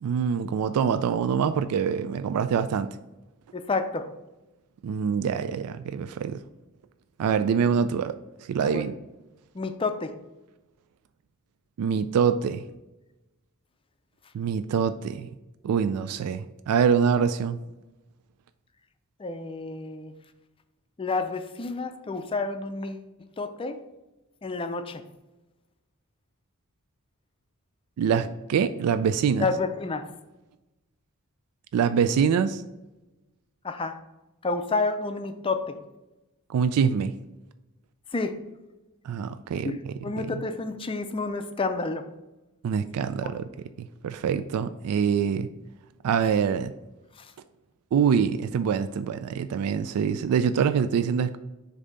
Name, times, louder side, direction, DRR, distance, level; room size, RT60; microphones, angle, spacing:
voice 1, 0.0-2.9 4.8-6.4 7.2-8.1 8.5-8.9 11.8-12.6 14.3-15.3 15.6-17.6 28.0-29.5 31.7-32.6 36.5-37.1 39.0-40.3 42.6-43.4 43.8-45.5 46.0-46.7 47.9-51.4, right 7 dB, 85° right, 11 dB, 0.3 m, -25 dB
voice 2, 3.5-4.1 8.6-8.8 9.5-10.1 19.2-20.1 21.0-23.1 23.4-23.8 24.4-25.0 29.4-30.1 33.6-34.0 34.4-35.7 38.1-38.4 39.6-42.0 47.2-47.3, left 3 dB, 25° left, 8 dB, 0.4 m, -29 dB
6.7 x 2.7 x 5.2 m, 1.0 s
head